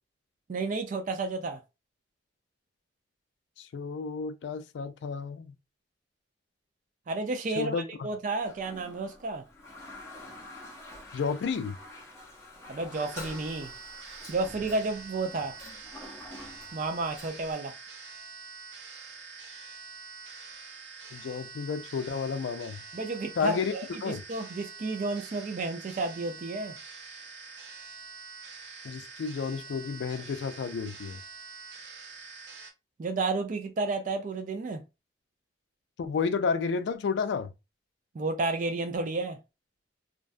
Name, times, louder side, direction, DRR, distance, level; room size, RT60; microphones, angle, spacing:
voice 1, 0.5-1.6 7.1-9.4 12.7-13.7 14.3-15.5 16.7-17.7 22.9-26.8 33.0-34.8 38.1-39.4, right 3 dB, 45° right, 0.3 m, -31 dB
voice 2, 3.6-5.5 7.6-8.1 11.1-11.8 21.1-22.8 23.4-23.7 24.0-24.2 28.8-31.2 36.0-37.5, left 5 dB, 75° left, 0.3 m, -31 dB
Toilet flush, 8.4-17.5, left 2 dB, 15° left, 0.5 m, -47 dB
sound 1, 12.9-32.7, right 4 dB, 80° right, 0.6 m, -46 dB
2.5 x 2.2 x 2.4 m
head